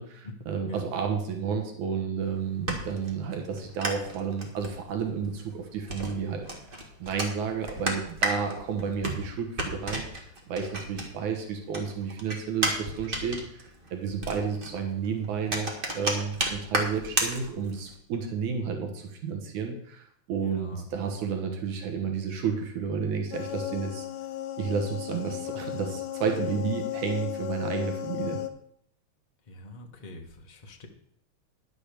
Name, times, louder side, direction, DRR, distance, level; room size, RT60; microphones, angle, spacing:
voice 1, 0.0-6.5 7.0-10.0 10.5-24.1 24.6-28.4, right 6 dB, 85° right, 3 dB, 2.8 m, -31 dB
sound 1, 2.2-11.4 11.7-18.0, right 1 dB, 25° right, 1.3 m, -33 dB
voice 2, 20.4-20.8 29.5-30.9, left 1 dB, 30° left, 2 dB, 0.8 m, -44 dB
sound 2, 23.3-28.5, left 12 dB, 80° left, 2.3 m, -35 dB
11.0 x 6.8 x 6.8 m, 0.69 s
omnidirectional pair, 3.3 m